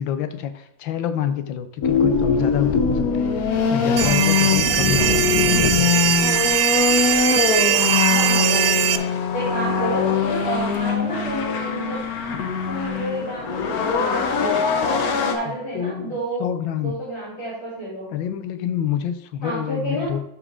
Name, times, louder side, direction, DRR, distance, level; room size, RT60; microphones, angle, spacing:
voice 1, 0.0-6.2 15.5-17.0 18.1-20.2, left 9 dB, 90° left, 10 dB, 1.5 m, -27 dB
sound 1, 1.8-15.3, left 6 dB, 60° left, 1.2 m, -22 dB
sound 2, 4.0-9.0, right 10 dB, 80° right, 0.7 m, -20 dB
voice 2, 4.7-5.2 8.1-12.0 12.7-16.5 16.8-18.1 19.4-20.1, right 1 dB, 35° left, -9 dB, 4.1 m, -30 dB
12.5 x 4.9 x 3.6 m, 0.77 s
omnidirectional pair, 2.0 m